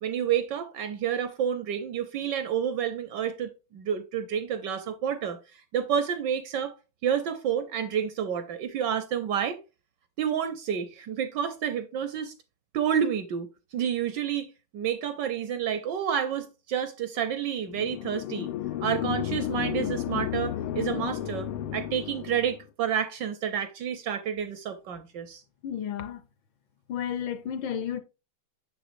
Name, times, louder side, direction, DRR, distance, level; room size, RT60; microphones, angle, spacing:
voice 1, 0.0-5.4 5.7-6.7 7.0-9.6 10.2-12.3 12.7-18.5 18.8-25.4, right 8 dB, 70° right, 1.1 m, -29 dB
sound 1, 17.7-22.6, left 11 dB, 85° left, 1.5 m, -32 dB
voice 2, 25.6-26.2 26.9-28.0, left 9 dB, 70° left, 1.3 m, -32 dB
6.5 x 6.1 x 2.5 m
omnidirectional pair, 2.3 m